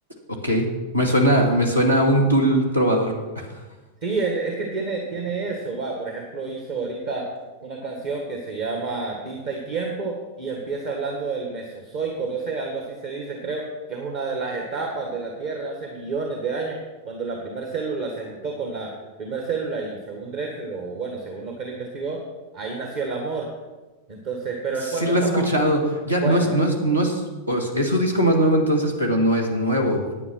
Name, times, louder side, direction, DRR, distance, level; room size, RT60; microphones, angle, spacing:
voice 1, 0.9-3.5 24.9-30.0, equal, 80° right, 1 dB, 2.0 m, -20 dB
voice 2, 4.0-7.2 7.6-13.6 13.9-16.8 17.0-18.9 19.2-22.2 22.5-23.5 24.1-25.5 26.2-26.5, right 4 dB, 50° right, 1 dB, 1.7 m, -29 dB
10.0 x 8.6 x 6.1 m, 1.2 s
figure-of-eight pair, 90°, 0 cm